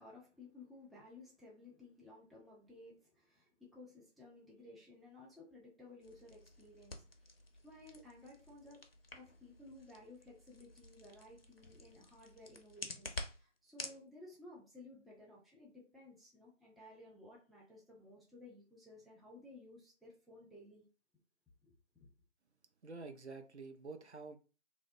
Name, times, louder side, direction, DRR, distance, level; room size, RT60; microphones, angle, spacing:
voice 1, 0.0-8.8 9.1-20.8 21.6-22.1, left 2 dB, ahead, 0.4 m, -57 dB
sound 1, 6.0-14.0, left 2 dB, 55° left, 0.4 m, -50 dB
voice 2, 22.8-24.4, right 3 dB, 65° right, 0.5 m, -48 dB
2.7 x 2.1 x 2.6 m
figure-of-eight pair, 170°, 37 cm